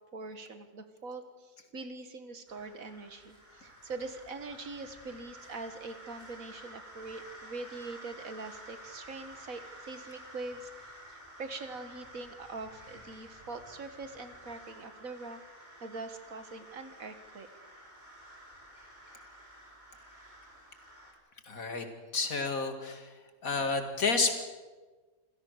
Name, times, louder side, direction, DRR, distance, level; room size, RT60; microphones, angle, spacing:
voice 1, 0.1-15.4 15.8-17.5, right 3 dB, 65° right, 8 dB, 2.2 m, -43 dB
sound 1, 2.5-21.1, right 1 dB, 30° right, 4.7 m, -51 dB
voice 2, 21.5-21.8 22.1-23.1 23.4-24.4, left 4 dB, 70° left, 6 dB, 2.6 m, -30 dB
27.5 x 16.0 x 6.7 m, 1.3 s
omnidirectional pair, 1.5 m